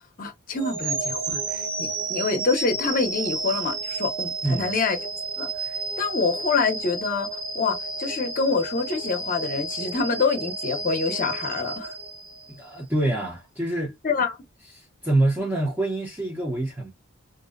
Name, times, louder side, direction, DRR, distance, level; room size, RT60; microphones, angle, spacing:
voice 1, 0.2-5.0 5.4-5.5 6.0-11.9 14.0-14.3, left 4 dB, 40° left, 0.7 m, -26 dB
sound 1, 0.6-12.7, right 3 dB, 40° right, 0.8 m, -31 dB
voice 2, 12.5-13.9 14.7-16.9, right 2 dB, 10° right, 0.5 m, -26 dB
2.5 x 2.1 x 2.3 m
head